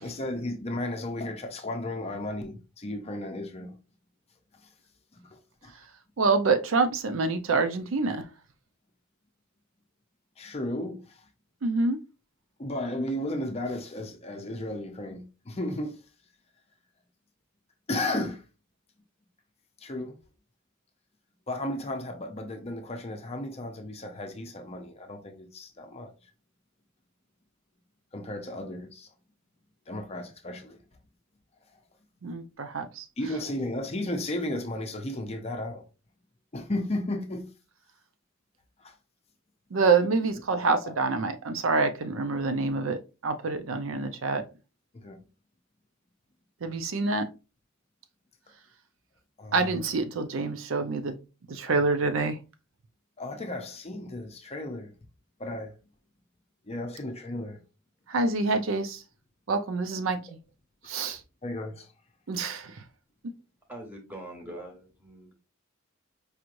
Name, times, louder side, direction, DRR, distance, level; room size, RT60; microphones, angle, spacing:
voice 1, 0.0-3.8 5.1-5.7 10.4-11.3 12.6-15.9 17.9-18.4 19.8-20.1 21.5-26.1 28.1-29.1 29.9-30.8 33.2-35.8 36.5-37.5 38.8-38.9 40.5-40.9 44.9-45.2 49.4-49.8 51.7-51.9 53.2-54.9 55.4-55.8 56.7-57.6 61.4-61.9, left 1 dB, 30° left, 0.6 m, -34 dB
voice 2, 6.2-8.2 11.6-12.0 32.2-33.4 39.7-44.4 46.6-47.3 49.5-51.2 51.5-52.4 58.1-59.0 59.5-60.2 60.9-61.2 62.3-62.8, right 3 dB, 70° right, 0.5 m, -27 dB
voice 3, 63.7-65.3, right 1 dB, 10° right, 1.3 m, -43 dB
4.8 x 3.1 x 2.5 m
head